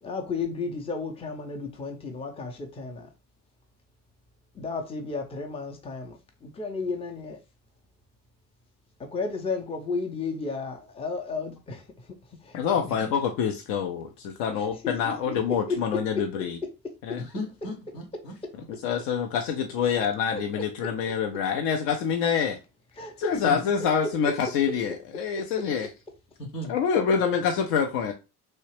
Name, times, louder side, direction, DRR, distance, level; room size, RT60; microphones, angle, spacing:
voice 1, 0.0-3.1 4.5-7.4 9.0-11.8 12.4-12.6 13.0-13.1 14.8-15.8 16.1-16.5 17.1-17.2 20.3-20.6 23.0-23.5 25.4-25.5, left 4 dB, 10° left, 0.6 m, -33 dB
voice 2, 12.5-16.6 17.0-17.2 18.8-22.6 23.2-25.9 26.7-28.1, left 7 dB, 50° left, 0.6 m, -26 dB
voice 3, 17.2-18.7 23.4-23.6 26.4-26.8, left 1 dB, 80° left, 1.1 m, -36 dB
3.2 x 2.7 x 3.0 m
figure-of-eight pair, 60°, 48 cm